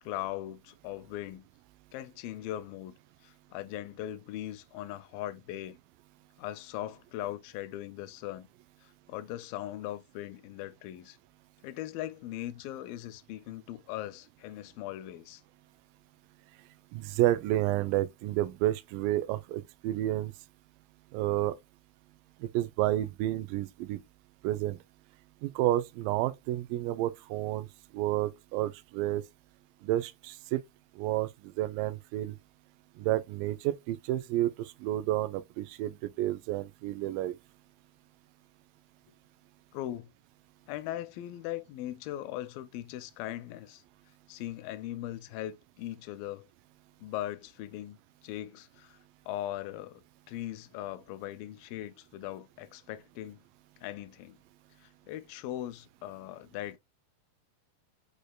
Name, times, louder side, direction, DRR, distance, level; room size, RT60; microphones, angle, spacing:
voice 1, 0.0-1.4 1.9-2.9 3.2-5.8 6.4-8.5 8.8-11.2 11.6-15.4 39.7-40.1 40.7-43.8 44.3-46.5 47.0-48.0 48.2-49.0 49.3-53.4 53.8-54.4 54.8-56.8, left 13 dB, 80° left, 2.2 m, -39 dB
voice 2, 16.9-20.3 21.1-21.5 22.4-24.0 24.4-24.8 25.4-27.7 27.9-29.2 29.8-30.6 31.0-32.4 33.0-37.4, right 14 dB, 80° right, 2.0 m, -30 dB
6.4 x 2.7 x 2.2 m
omnidirectional pair, 4.2 m